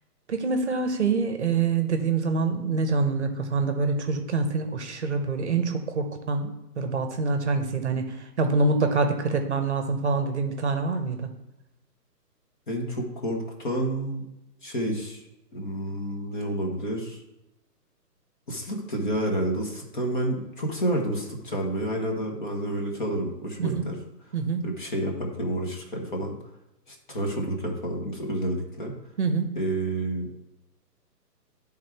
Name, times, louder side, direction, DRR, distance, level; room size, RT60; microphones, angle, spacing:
voice 1, 0.3-6.5 6.8-11.3 23.6-23.8 24.3-24.7 29.2-29.5, right 4 dB, 45° right, 6 dB, 0.8 m, -25 dB
voice 2, 12.7-14.2 14.6-15.2 15.5-17.2 18.5-24.0 24.6-26.3 26.9-28.9 29.6-30.3, right 1 dB, 30° left, 1 dB, 1.1 m, -29 dB
10.5 x 3.7 x 4.5 m, 0.91 s
hypercardioid pair, 170°, 49 cm